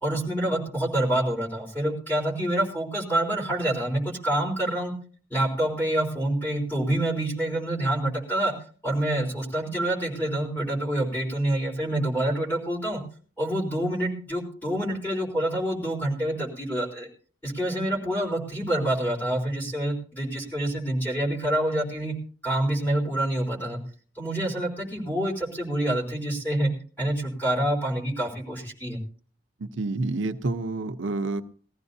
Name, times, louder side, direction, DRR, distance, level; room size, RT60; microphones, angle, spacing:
voice 1, 0.0-4.9 5.3-8.5 8.8-13.0 13.4-17.1 17.4-22.1 22.4-23.8 24.2-26.7 27.0-29.0, right 1 dB, 10° left, -5 dB, 3.9 m, -27 dB
voice 2, 29.6-31.4, right 2 dB, 80° right, 7 dB, 0.8 m, -28 dB
20.5 x 15.0 x 2.7 m, 0.41 s
head